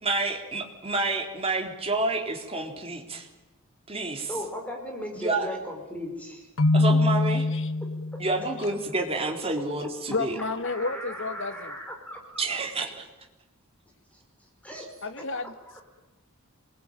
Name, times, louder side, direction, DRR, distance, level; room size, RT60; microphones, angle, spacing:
voice 1, 0.0-3.3 3.9-4.3 5.2-5.5 6.7-7.5 8.2-10.4 12.4-12.9, right 2 dB, 30° right, 2 dB, 3.9 m, -29 dB
voice 2, 4.3-6.5 10.6-12.2 12.5-12.6 14.6-14.9, equal, 5° left, 1 dB, 5.2 m, -37 dB
Keyboard (musical), 6.6-8.4, left 2 dB, 80° left, 1.1 m, -23 dB
voice 3, 10.1-11.8 15.0-15.5, left 3 dB, 60° left, 10 dB, 1.9 m, -31 dB
27.5 x 21.5 x 9.1 m, 1.0 s
head